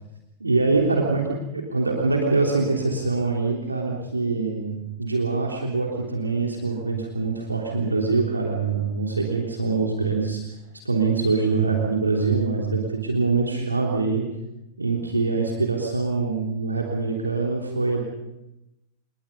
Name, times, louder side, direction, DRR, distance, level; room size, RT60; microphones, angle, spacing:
voice 1, 0.4-10.4 10.8-14.2 14.8-18.0, right 4 dB, 80° right, -1 dB, 3.4 m, -24 dB
29.0 x 20.0 x 5.4 m, 0.92 s
figure-of-eight pair, 90°, 0 cm